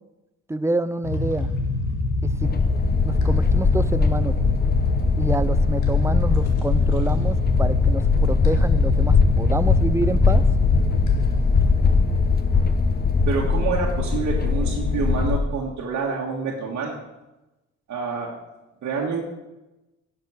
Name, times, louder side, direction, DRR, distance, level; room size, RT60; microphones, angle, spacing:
voice 1, 0.5-1.5 2.2-2.5 3.0-4.4 5.2-10.4, right 2 dB, 10° right, 14 dB, 0.5 m, -27 dB
sound 1, 1.0-11.8, left 2 dB, 75° left, 1.9 m, -26 dB
sound 2, 2.4-15.4, left 4 dB, 30° left, 0.9 m, -20 dB
voice 2, 13.3-17.0 17.9-18.3 18.8-19.2, right 4 dB, 65° right, -3 dB, 1.8 m, -27 dB
11.0 x 6.6 x 6.3 m, 1.0 s
cardioid pair, 90°, 30 cm